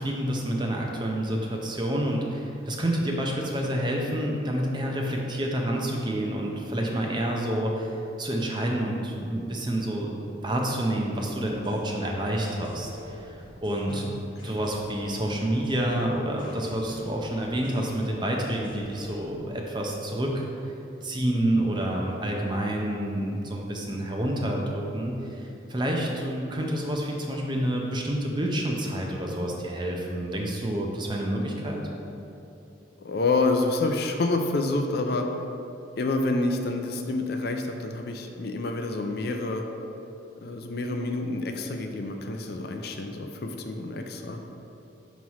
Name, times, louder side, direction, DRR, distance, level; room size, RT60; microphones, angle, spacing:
voice 1, 0.0-14.1 14.4-20.5 21.0-31.8, right 1 dB, 25° right, 0 dB, 0.6 m, -28 dB
sound 1, 11.6-19.4, left 2 dB, 25° left, 0.9 m, -48 dB
voice 2, 13.9-14.3 33.0-35.3 36.0-39.6 40.4-44.4, left 2 dB, 50° left, 4 dB, 0.4 m, -28 dB
6.0 x 3.1 x 5.5 m, 2.8 s
head